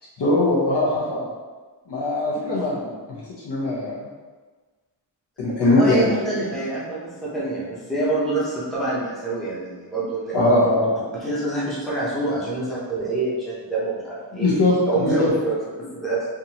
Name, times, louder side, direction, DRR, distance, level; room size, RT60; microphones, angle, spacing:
voice 1, 0.2-1.3 1.9-2.9 3.4-4.0 5.4-6.0 10.3-10.9 14.3-15.3, left 2 dB, 60° left, -6 dB, 0.9 m, -20 dB
voice 2, 5.6-10.3 11.1-14.5 14.9-16.3, right 2 dB, ahead, -8 dB, 0.7 m, -26 dB
3.6 x 2.6 x 2.8 m, 1.3 s
wide cardioid pair, 155°, 45 cm